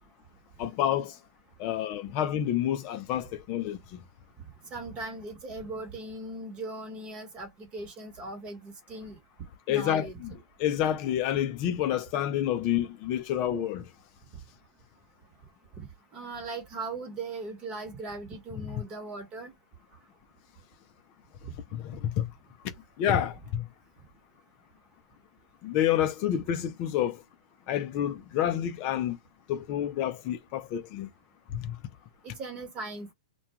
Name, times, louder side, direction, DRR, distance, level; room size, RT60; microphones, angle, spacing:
voice 1, 0.6-1.2 1.6-4.0 9.7-10.3 10.6-13.9 18.6-18.8 21.7-22.3 23.0-23.7 25.6-27.2 27.7-29.2 29.5-31.1 31.5-31.8, left 11 dB, 40° left, 0.5 m, -29 dB
voice 2, 4.7-9.2 9.7-10.2 15.8-15.9 16.1-19.5 32.2-33.1, right 2 dB, 25° right, 1.1 m, -39 dB
2.3 x 2.3 x 2.9 m
hypercardioid pair, 135°, 4 cm